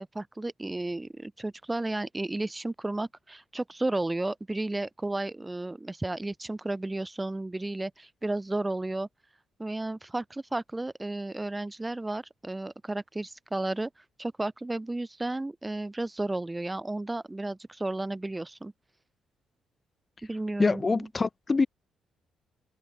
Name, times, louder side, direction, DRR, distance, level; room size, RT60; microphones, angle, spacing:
voice 1, 0.0-9.1 9.6-13.9 14.2-18.7 20.2-21.1, right 2 dB, 15° right, 3.5 m, -33 dB
voice 2, 20.6-21.7, left 4 dB, 30° left, 2.9 m, -25 dB
cardioid pair, 90°, 0 cm